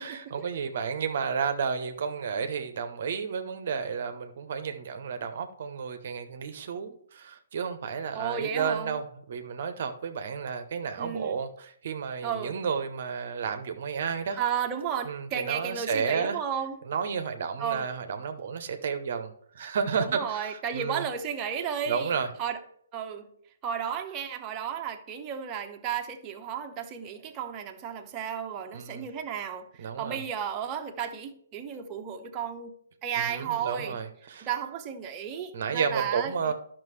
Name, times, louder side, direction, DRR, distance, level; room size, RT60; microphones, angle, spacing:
voice 1, 0.0-14.4 15.0-16.4 16.8-21.1 21.8-22.3 28.7-29.0 29.8-30.2 33.2-34.5 35.5-36.5, right 6 dB, 50° right, 0.8 m, -32 dB
voice 2, 8.1-8.9 11.0-11.4 12.2-12.6 14.4-16.8 17.6-17.9 20.0-22.6 22.9-23.3 23.6-32.7 33.0-34.0 34.4-36.3, right 8 dB, 25° right, 0.9 m, -33 dB
12.0 x 6.0 x 3.2 m
figure-of-eight pair, 130°, 0 cm